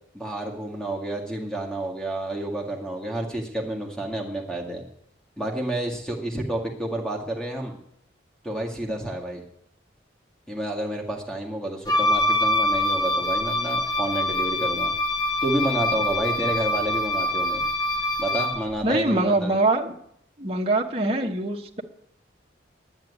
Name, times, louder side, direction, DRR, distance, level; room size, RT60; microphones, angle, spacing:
voice 1, 0.1-4.9 5.4-7.8 8.4-9.4 10.5-14.9 15.4-17.6 18.2-19.5, right 1 dB, 5° left, 1 dB, 1.8 m, -29 dB
Wind instrument woodwind instrument, 11.9-18.6, left 1 dB, 20° left, 0.9 m, -24 dB
voice 2, 18.8-19.9 20.4-21.8, right 2 dB, 30° right, 1 dB, 1.0 m, -23 dB
10.5 x 8.2 x 10.0 m, 0.72 s
head